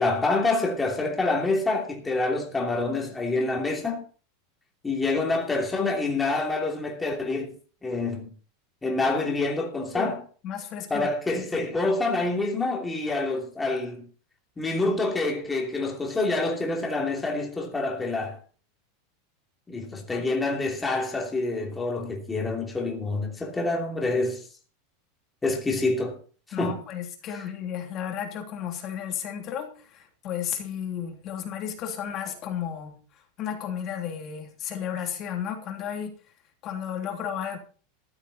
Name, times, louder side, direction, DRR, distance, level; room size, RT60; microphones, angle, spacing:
voice 1, 0.0-4.0 4.8-7.5 7.8-8.3 8.8-10.2 10.9-14.1 14.6-18.4 19.7-24.4 25.4-26.2 26.6-26.8, left 3 dB, 10° left, 2.9 m, -27 dB
voice 2, 10.4-11.1 11.3-11.5 20.1-20.2 26.5-36.1 36.6-37.6, left 9 dB, 30° left, 3.1 m, -33 dB
14.5 x 12.0 x 4.1 m
supercardioid pair, 165°, 0 cm